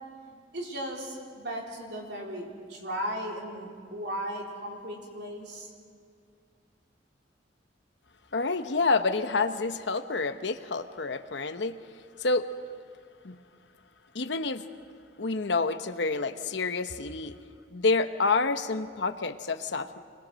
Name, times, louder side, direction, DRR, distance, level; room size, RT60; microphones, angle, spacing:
voice 1, 0.2-5.7, equal, 65° right, -1 dB, 3.9 m, -36 dB
voice 2, 8.3-11.8 12.2-12.5 13.2-13.4 14.1-14.7 15.2-17.4 17.7-20.0, left 3 dB, 70° left, 9 dB, 1.0 m, -28 dB
26.0 x 22.0 x 6.4 m, 2.2 s
head